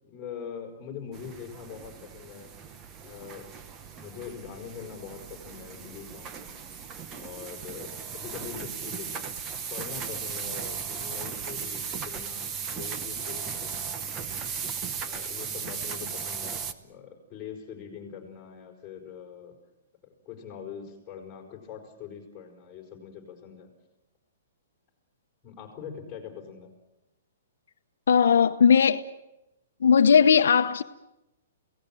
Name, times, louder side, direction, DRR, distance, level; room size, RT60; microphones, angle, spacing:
voice 1, 0.0-2.5 2.9-3.5 3.9-6.5 7.1-9.4 9.7-13.9 15.0-19.5 20.2-23.7 25.4-26.7, left 7 dB, 15° left, 5.1 m, -43 dB
sound 1, 1.1-16.7, right 6 dB, 15° right, 0.9 m, -37 dB
voice 2, 28.1-29.1 29.8-30.8, left 7 dB, 75° left, 0.9 m, -18 dB
28.0 x 17.5 x 7.7 m
hypercardioid pair, 170°, 0 cm